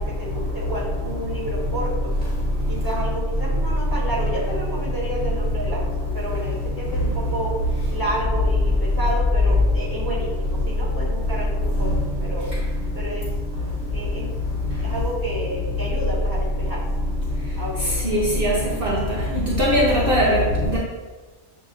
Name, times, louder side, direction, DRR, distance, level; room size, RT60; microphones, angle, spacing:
voice 1, 0.0-2.1 2.7-7.6 7.9-12.5 12.9-13.3 13.9-14.3 14.8-16.8 17.5-18.4, right 1 dB, 15° left, -9 dB, 1.4 m, -30 dB
voice 2, 18.0-18.5 18.8-18.9 19.6-20.4 20.7-20.8, equal, 55° right, -4 dB, 0.8 m, -19 dB
7.3 x 2.6 x 2.6 m, 1.3 s
omnidirectional pair, 1.3 m